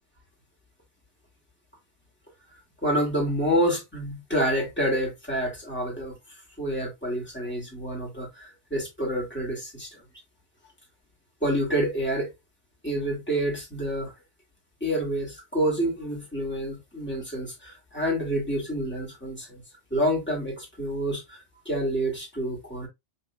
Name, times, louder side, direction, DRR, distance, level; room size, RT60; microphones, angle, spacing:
voice 1, 2.8-6.1 6.6-10.0 11.4-12.3 12.8-14.1 14.8-19.6 19.9-22.9, equal, 10° left, 2.3 m, -28 dB
5.5 x 3.6 x 2.3 m
omnidirectional pair, 1.2 m